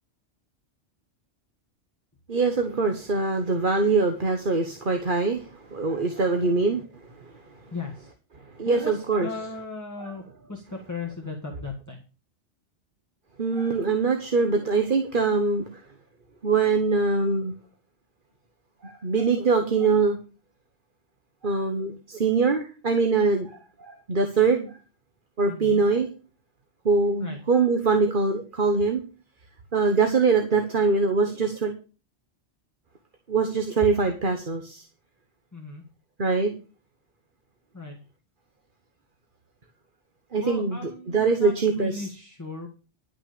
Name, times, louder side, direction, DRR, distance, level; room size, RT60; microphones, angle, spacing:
voice 1, 2.3-6.8 7.2-7.3 8.6-9.3 13.4-15.7 16.4-17.5 18.8-20.2 21.4-24.8 25.4-26.1 26.8-29.0 29.7-31.7 33.3-34.8 36.2-36.5 40.3-42.1, right 4 dB, 45° right, 5 dB, 1.5 m, -23 dB
voice 2, 7.7-8.1 8.7-12.0 25.5-25.8 27.2-27.4 35.5-35.8 37.7-38.0 40.4-42.7, left 3 dB, 15° left, 0 dB, 1.8 m, -37 dB
11.5 x 6.3 x 6.9 m, 0.34 s
omnidirectional pair, 1.2 m